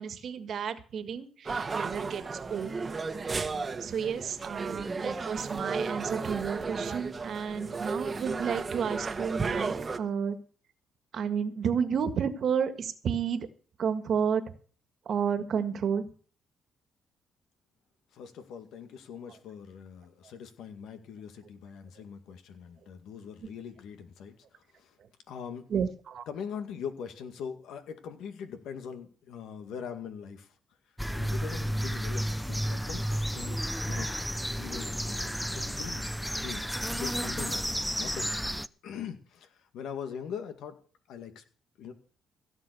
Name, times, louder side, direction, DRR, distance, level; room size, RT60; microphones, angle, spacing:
voice 1, 0.0-2.7 3.8-10.4 11.1-13.5 13.8-14.4 15.0-16.0 25.7-26.2, right 7 dB, 60° right, 9 dB, 1.7 m, -31 dB
sound 1, 1.5-10.0, right 4 dB, 30° right, 1.2 m, -34 dB
voice 2, 18.1-25.0 25.3-25.7 26.3-30.5 31.1-34.2 34.6-36.1 36.3-38.5 38.8-40.8 41.1-41.4 41.8-41.9, left 7 dB, 80° left, 7 dB, 2.1 m, -42 dB
sound 2, 31.0-38.7, equal, ahead, 0.6 m, -32 dB
16.5 x 7.4 x 6.9 m, 0.42 s
cardioid pair, 90°, 0 cm